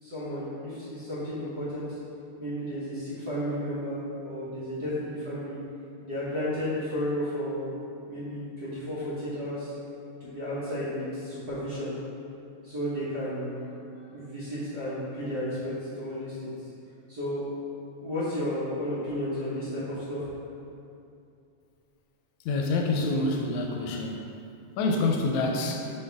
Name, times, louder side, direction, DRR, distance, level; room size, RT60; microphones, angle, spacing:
voice 1, 0.0-1.9 2.4-5.6 6.0-7.7 8.1-9.7 10.2-11.9 12.6-13.7 13.9-16.5 17.1-17.5 18.0-20.3, equal, 45° right, -11 dB, 1.5 m, -33 dB
voice 2, 22.5-24.2 24.8-25.9, left 2 dB, 80° left, 1 dB, 1.9 m, -27 dB
5.6 x 5.5 x 3.4 m, 2.6 s
omnidirectional pair, 3.4 m